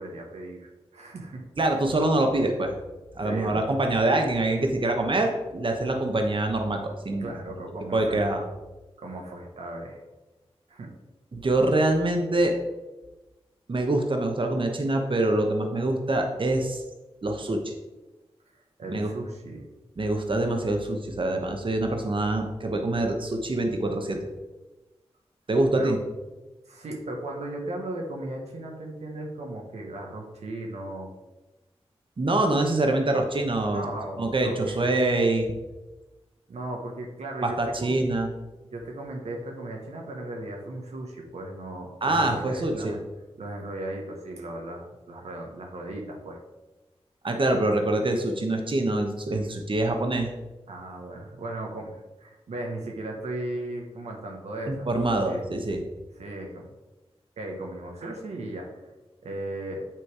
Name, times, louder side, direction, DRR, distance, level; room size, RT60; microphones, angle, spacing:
voice 1, 0.0-1.4 3.2-3.8 5.9-6.1 7.2-8.4 9.0-10.0 10.7-10.9 18.5-19.6 25.8-26.0 26.7-31.1 33.7-34.8 36.5-38.0 38.7-43.0 43.4-46.4 50.7-54.9 55.3-55.4 56.1-56.7 57.4-58.8 59.2-59.9, right 1 dB, 90° right, 0 dB, 1.1 m, -36 dB
voice 2, 1.6-2.7 3.2-7.3 7.9-8.4 11.3-12.5 13.7-16.8 17.2-17.7 18.9-19.1 20.0-24.3 25.5-26.0 32.2-33.8 34.2-35.5 37.4-38.3 42.0-42.9 47.2-50.3 54.7-55.8, right 2 dB, 50° right, 3 dB, 1.0 m, -25 dB
9.0 x 3.2 x 4.8 m, 1.1 s
cardioid pair, 40°, 11 cm